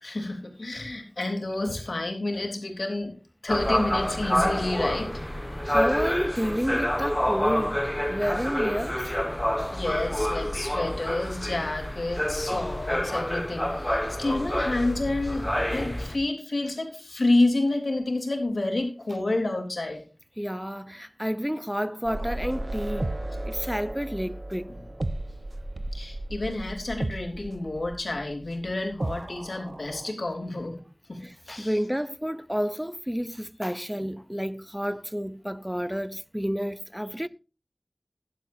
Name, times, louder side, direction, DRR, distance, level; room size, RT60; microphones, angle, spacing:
voice 1, 0.0-3.1 3.4-5.2 9.7-15.5 15.7-20.0 25.9-30.8 31.1-31.2 31.5-31.7, left 2 dB, 80° left, 3.4 m, -29 dB
sound 1, 3.5-16.2, left 1 dB, 15° left, 1.4 m, -28 dB
voice 2, 5.7-7.8 8.1-9.1 20.4-23.1 23.5-24.7 31.2-37.3, equal, 5° right, 0.6 m, -30 dB
sound 2, 22.0-30.1, right 1 dB, 55° right, 0.9 m, -34 dB
16.0 x 11.5 x 2.7 m
wide cardioid pair, 40°, 0 cm